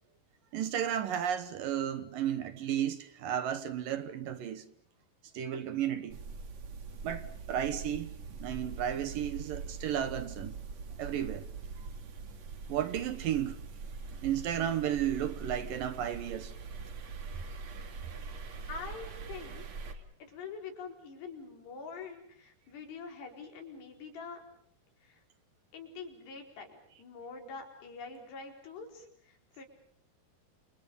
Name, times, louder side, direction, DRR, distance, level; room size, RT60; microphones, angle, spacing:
voice 1, 0.5-4.6 5.3-6.2 7.0-8.1 8.4-10.6 11.0-11.5 12.7-13.6 14.2-16.5, right 10 dB, 65° right, 2.4 m, -33 dB
sound 1, 6.1-19.9, right 5 dB, 45° right, 3.0 m, -43 dB
voice 2, 18.7-19.6 20.3-24.4 25.0-25.2 25.7-29.6, left 5 dB, 75° left, 6.6 m, -45 dB
29.0 x 28.5 x 5.4 m
omnidirectional pair, 4.9 m